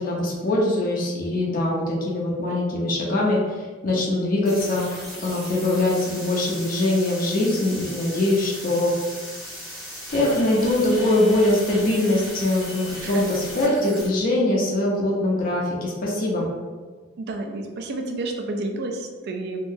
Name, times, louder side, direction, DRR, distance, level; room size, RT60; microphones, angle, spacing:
voice 1, 0.0-4.8 5.2-8.9 10.1-16.5, left 1 dB, 40° left, -3 dB, 0.5 m, -22 dB
sound 1, 4.4-14.1, equal, ahead, 0.7 m, -37 dB
voice 2, 17.2-19.6, right 2 dB, 50° right, 3 dB, 0.3 m, -30 dB
3.6 x 2.0 x 2.6 m, 1.4 s
head